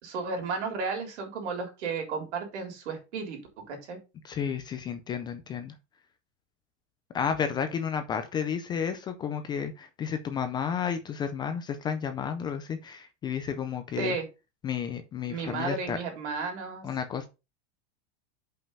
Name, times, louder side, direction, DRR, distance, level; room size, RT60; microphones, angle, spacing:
voice 1, 0.0-3.4 3.7-4.0 14.0-14.3 15.3-16.9, right 4 dB, 85° right, 3 dB, 3.6 m, -33 dB
voice 2, 4.2-5.7 7.1-14.2 14.6-16.0 16.8-17.3, left 7 dB, 15° left, 8 dB, 0.3 m, -32 dB
5.6 x 5.4 x 5.3 m, 0.28 s
supercardioid pair, 165°, 34 cm